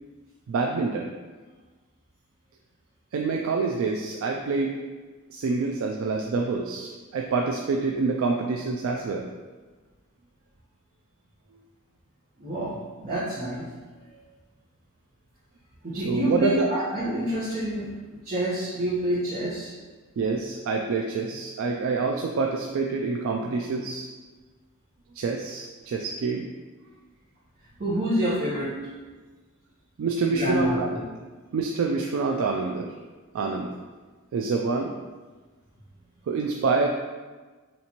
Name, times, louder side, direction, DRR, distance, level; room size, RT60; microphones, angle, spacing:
voice 1, 0.5-1.1 3.1-4.8 5.3-9.3 15.9-16.7 20.2-24.1 25.2-26.5 30.0-31.0 31.5-32.9 33.3-33.7 34.3-34.9 36.3-36.9, right 4 dB, 70° right, 1 dB, 0.3 m, -26 dB
voice 2, 12.4-13.7 14.0-14.2 15.8-19.7 27.8-28.7 30.3-31.0, equal, 35° right, -11 dB, 1.0 m, -28 dB
4.2 x 3.3 x 2.9 m, 1.4 s
head